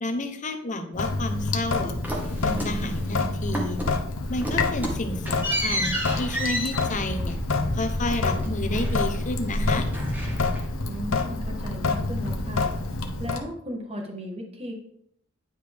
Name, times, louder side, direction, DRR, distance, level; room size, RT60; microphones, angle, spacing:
voice 1, 0.0-1.9 2.4-3.8 4.3-7.4 7.7-9.9, left 1 dB, 40° left, 7 dB, 0.8 m, -31 dB
Sink (filling or washing) / Drip, 1.0-13.4, left 3 dB, 80° left, 0.8 m, -28 dB
sound 1, 2.0-3.2 3.5-4.0 4.3-9.2 9.5-10.8, equal, 10° right, 1.5 m, -31 dB
voice 2, 10.9-12.7 13.2-14.7, equal, 30° right, 2 dB, 1.4 m, -35 dB
9.9 x 4.8 x 3.5 m, 0.68 s
head